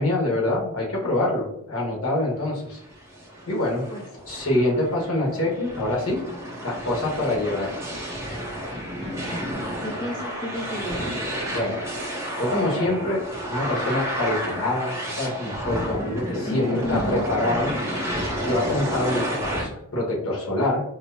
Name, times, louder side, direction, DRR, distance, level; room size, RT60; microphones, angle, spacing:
voice 1, 0.0-2.8 3.5-3.8 4.3-6.2 6.6-7.7 11.5-11.9 12.4-13.2 13.5-17.7 18.4-20.8, left 1 dB, 70° left, -3 dB, 1.3 m, -25 dB
sound 1, 2.8-19.6, equal, 10° right, 0.7 m, -31 dB
voice 2, 9.0-9.5 9.8-11.2 16.5-17.3, left 1 dB, 20° left, 0 dB, 0.4 m, -32 dB
4.5 x 2.1 x 2.7 m, 0.73 s
head